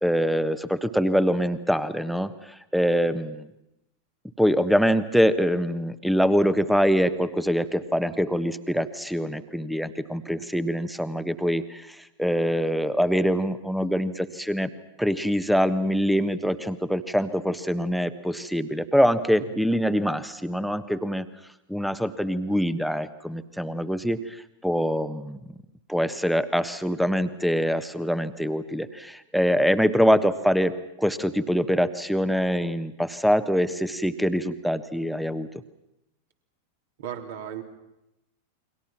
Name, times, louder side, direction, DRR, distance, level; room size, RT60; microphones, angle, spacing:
voice 1, 0.0-3.5 4.4-14.7 15.0-21.3 21.7-25.4 25.9-30.7 31.0-35.5, equal, ahead, 13 dB, 1.4 m, -24 dB
voice 2, 37.0-37.6, right 9 dB, 55° right, 3 dB, 3.6 m, -35 dB
30.0 x 23.5 x 6.0 m, 0.87 s
figure-of-eight pair, 90°, 0 cm